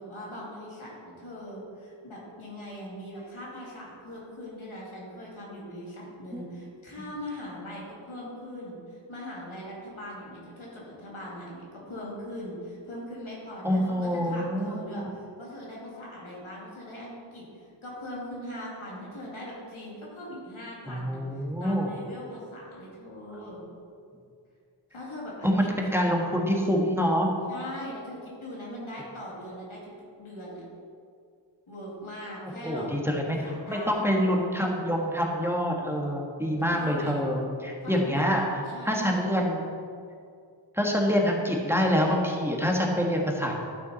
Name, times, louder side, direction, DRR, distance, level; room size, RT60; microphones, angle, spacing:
voice 1, 0.0-23.6 24.9-25.7 27.5-29.9 30.2-30.6 31.7-33.0 33.4-34.0 36.7-37.3 37.8-38.3 38.7-39.2, left 1 dB, 90° left, -5 dB, 2.4 m, -41 dB
voice 2, 13.6-15.0 20.9-21.9 25.4-27.3 32.6-33.4 33.7-39.7 40.7-43.5, equal, 5° right, -1 dB, 1.4 m, -26 dB
12.0 x 6.3 x 4.0 m, 2.3 s
wide cardioid pair, 40°, 47 cm